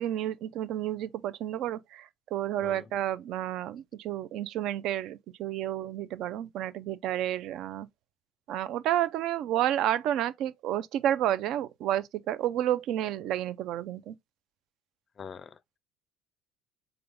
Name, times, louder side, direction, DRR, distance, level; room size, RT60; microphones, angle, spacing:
voice 1, 0.0-7.9 8.5-14.1, right 12 dB, 60° right, 0.4 m, -30 dB
voice 2, 2.6-2.9 15.2-15.8, left 6 dB, 40° left, 0.4 m, -44 dB
3.8 x 3.4 x 3.4 m
hypercardioid pair, 70°, 0 cm